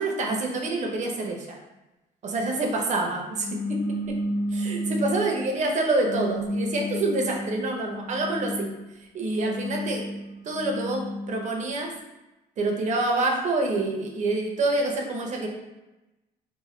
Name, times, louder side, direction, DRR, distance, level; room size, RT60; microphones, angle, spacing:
voice 1, 0.0-1.6 2.2-3.8 4.5-8.7 9.1-10.0 10.4-11.9 12.6-15.5, right 2 dB, 45° right, 1 dB, 0.6 m, -27 dB
sound 1, 3.4-5.4 6.0-8.7 9.3-11.6, left 1 dB, 45° left, 1.2 m, -31 dB
3.1 x 2.0 x 3.0 m, 1.0 s
cardioid pair, 110°, 17 cm